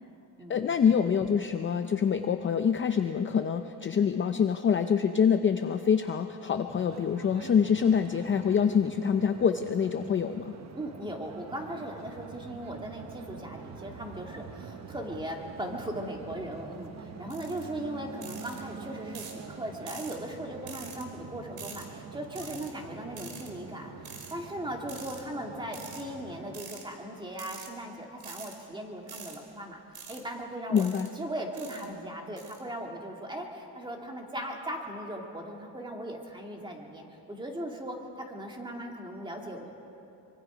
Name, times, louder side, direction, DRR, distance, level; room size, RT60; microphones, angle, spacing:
voice 1, 0.5-10.5 30.7-31.1, left 7 dB, 30° left, 7 dB, 0.5 m, -25 dB
sound 1, 6.7-26.6, right 5 dB, 40° right, 1.1 m, -46 dB
voice 2, 10.7-29.8 30.1-30.9 31.2-39.7, right 1 dB, 10° right, 1 dB, 2.2 m, -38 dB
sound 2, 17.3-17.6 18.2-18.6 19.1-19.4 19.9-20.2 20.7-21.0 21.6-21.9 22.4-22.7 23.2-23.5 24.0-24.3 24.9-25.2 25.7-26.0 26.5-26.8 27.3-27.7 28.2-28.6 29.1-29.4 29.9-30.2 30.8-31.1 31.6-31.9 32.4-32.6, right 6 dB, 55° right, 2.9 m, -45 dB
24.5 x 24.0 x 5.0 m, 2.9 s
cardioid pair, 155°, 43 cm